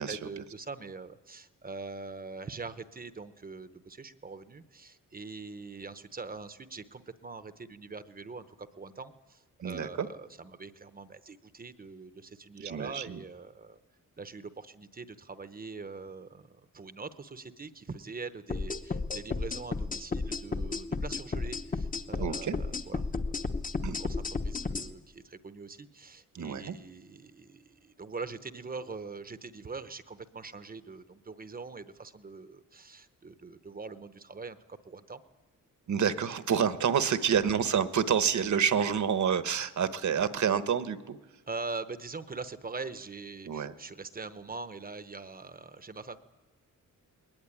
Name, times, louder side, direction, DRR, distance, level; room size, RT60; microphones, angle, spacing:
voice 1, 0.1-13.8 14.2-23.0 24.0-35.2 37.3-37.4 41.5-46.2, right 4 dB, 25° right, 12 dB, 0.8 m, -43 dB
voice 2, 9.6-10.1 12.6-13.2 22.2-22.6 23.8-24.0 26.3-26.8 35.9-41.2 43.5-43.7, right 7 dB, 60° right, 12 dB, 1.1 m, -28 dB
sound 1, 18.5-24.9, left 4 dB, 25° left, 0.9 m, -33 dB
21.0 x 18.0 x 9.8 m, 1.2 s
wide cardioid pair, 170°, 33 cm